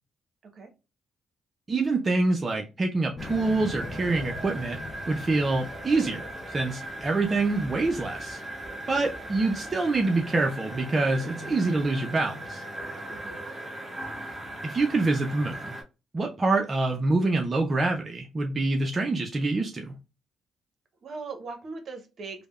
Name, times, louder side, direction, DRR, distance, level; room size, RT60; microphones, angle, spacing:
voice 1, 1.7-4.8 5.1-8.4 8.9-12.6 14.6-15.7 16.1-19.9, right 3 dB, 30° right, 0.4 m, -26 dB
sound 1, 3.2-8.4 8.9-9.7, left 3 dB, 30° left, 0.4 m, -42 dB
sound 2, 3.2-15.8, right 1 dB, 15° right, 0.9 m, -39 dB
voice 2, 13.1-13.4 21.0-22.5, right 4 dB, 55° right, 0.8 m, -39 dB
3.3 x 2.1 x 2.3 m
cardioid pair, 90°, 0 cm